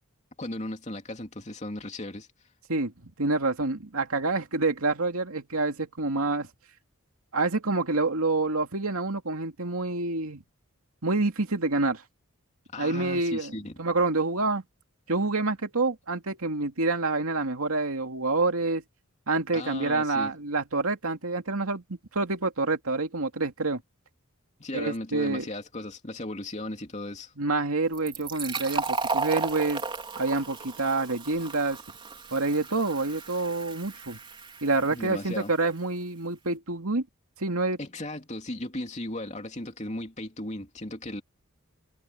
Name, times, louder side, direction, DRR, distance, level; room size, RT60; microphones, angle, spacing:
voice 1, 0.4-2.3 12.7-13.8 19.5-20.3 24.6-27.3 34.9-35.5 37.8-41.2, left 1 dB, 35° left, 2.9 m, -36 dB
voice 2, 2.7-6.5 7.3-10.4 11.0-12.0 12.8-13.5 13.8-14.6 15.1-18.8 19.3-21.8 22.1-23.8 24.7-25.5 27.4-29.8 30.2-31.8 32.3-34.2 34.6-37.0 37.4-37.8, right 3 dB, 85° right, 2.5 m, -27 dB
Fill (with liquid), 27.9-35.3, right 4 dB, 25° right, 4.2 m, -34 dB
head